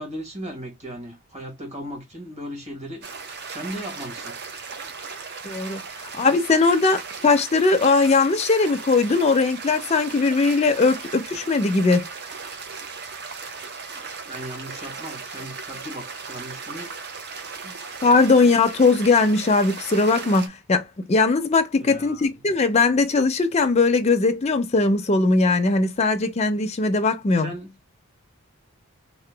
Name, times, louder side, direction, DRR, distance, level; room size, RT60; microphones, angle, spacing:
voice 1, 0.0-3.1 3.4-4.4 14.3-16.9 21.7-22.5 27.3-27.7, equal, 30° right, 1.4 m, -37 dB
sound 1, 3.0-20.5, right 5 dB, 50° right, 0.6 m, -37 dB
voice 2, 5.4-12.0 17.6-17.7 18.0-27.5, left 3 dB, 30° left, 0.4 m, -20 dB
2.8 x 2.2 x 3.2 m
head